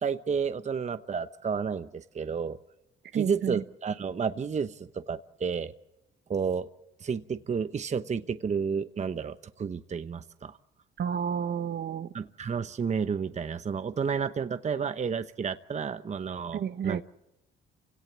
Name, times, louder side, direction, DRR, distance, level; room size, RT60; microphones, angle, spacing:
voice 1, 0.0-2.6 3.1-5.7 6.3-6.7 7.0-10.6 12.1-17.0, right 6 dB, 35° right, 11 dB, 0.9 m, -31 dB
voice 2, 3.1-3.6 11.0-12.1 16.5-17.0, right 8 dB, 60° right, 12 dB, 1.1 m, -30 dB
28.5 x 17.5 x 7.4 m, 0.93 s
cardioid pair, 90°, 20 cm